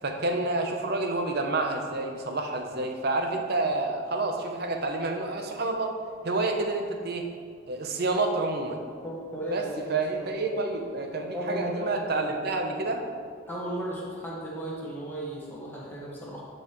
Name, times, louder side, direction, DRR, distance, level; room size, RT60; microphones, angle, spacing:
voice 1, 0.0-5.9 6.2-7.3 7.7-8.8 9.5-13.0, right 2 dB, 55° right, 4 dB, 0.8 m, -29 dB
voice 2, 9.0-10.3 11.3-12.5 13.5-16.4, right 1 dB, 10° left, -6 dB, 1.5 m, -35 dB
11.0 x 5.4 x 3.1 m, 2.1 s
head